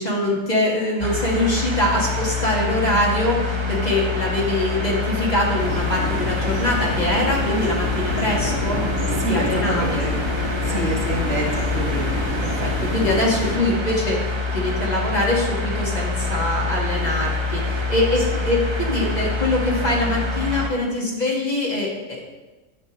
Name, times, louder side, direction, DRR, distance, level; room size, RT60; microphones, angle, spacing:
voice 1, 0.0-10.0 10.7-10.9 12.4-22.2, left 1 dB, 30° left, -4 dB, 1.6 m, -23 dB
sound 1, 1.0-20.7, left 3 dB, 25° right, 0.9 m, -26 dB
sound 2, 5.6-13.5, equal, 65° left, 3.1 m, -28 dB
voice 2, 9.2-10.1 10.7-12.2, right 2 dB, 60° right, -1 dB, 1.7 m, -26 dB
10.0 x 7.8 x 3.0 m, 1.2 s
omnidirectional pair, 1.4 m